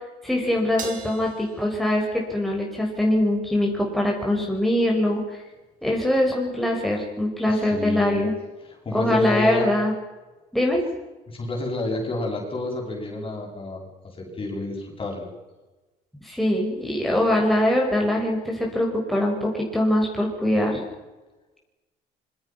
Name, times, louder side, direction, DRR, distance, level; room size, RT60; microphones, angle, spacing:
voice 1, 0.2-5.4 5.8-8.3 8.9-9.9 10.5-10.8 16.2-20.8, left 1 dB, ahead, -1 dB, 6.1 m, -23 dB
Crash cymbal, 0.8-3.3, right 6 dB, 55° right, 6.0 m, -40 dB
voice 2, 7.5-8.3 8.6-9.7 11.3-15.3, left 2 dB, 30° left, 1 dB, 7.8 m, -30 dB
26.0 x 25.0 x 6.1 m, 1.2 s
cardioid pair, 110°, 17 cm